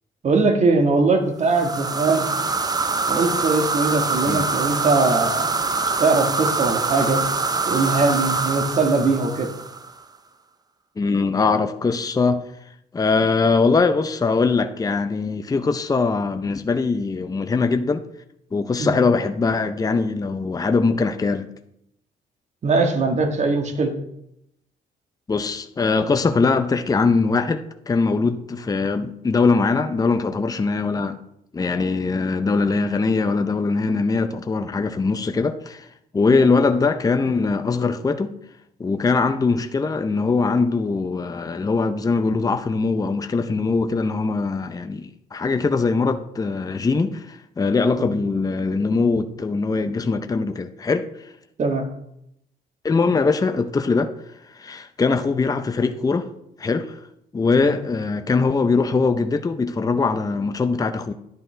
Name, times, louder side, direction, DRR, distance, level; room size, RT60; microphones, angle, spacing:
voice 1, 0.2-2.3 3.1-5.5 6.0-7.2 7.7-9.5 18.8-18.9 22.6-23.9 36.3-36.4 48.0-48.1 51.6-51.9 57.6-57.7, right 3 dB, 45° right, 1.7 m, -21 dB
sound 1, 1.5-10.0, right 3 dB, 25° right, 0.7 m, -24 dB
voice 2, 11.0-12.4 12.9-18.1 18.5-21.4 25.3-31.2 31.5-35.9 36.1-38.3 38.8-51.1 52.8-54.1 54.5-56.3 56.6-57.0 57.3-61.1, left 4 dB, 20° left, 0.7 m, -21 dB
11.0 x 10.5 x 3.4 m
cardioid pair, 100°, 17 cm